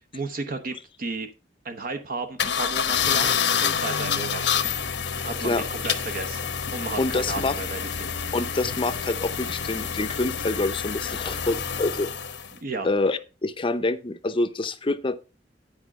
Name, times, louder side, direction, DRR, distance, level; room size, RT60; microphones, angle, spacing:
voice 1, 0.1-1.3 1.6-4.7 5.2-8.1 12.6-12.9, right 3 dB, 50° right, 0.8 m, -34 dB
sound 1, 2.4-12.5, left 7 dB, 85° left, 0.9 m, -28 dB
voice 2, 7.0-7.6 8.3-12.1 12.8-15.2, left 2 dB, 30° left, 0.6 m, -26 dB
10.0 x 4.9 x 4.8 m
head